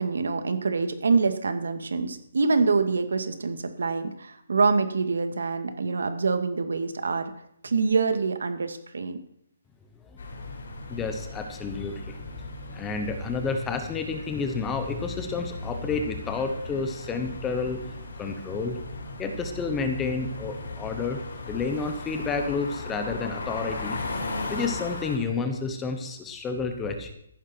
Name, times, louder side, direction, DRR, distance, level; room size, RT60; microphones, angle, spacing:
voice 1, 0.0-7.3 7.6-9.2, right 4 dB, 90° right, 8 dB, 2.1 m, -25 dB
sound 1, 10.2-25.2, left 3 dB, 70° left, 5.1 m, -37 dB
voice 2, 10.9-12.2 12.7-17.9 18.2-18.8 19.2-21.2 21.5-24.0 24.5-27.1, left 4 dB, 10° left, 6 dB, 1.0 m, -30 dB
15.0 x 11.5 x 4.5 m, 0.74 s
hypercardioid pair, 175°, 0 cm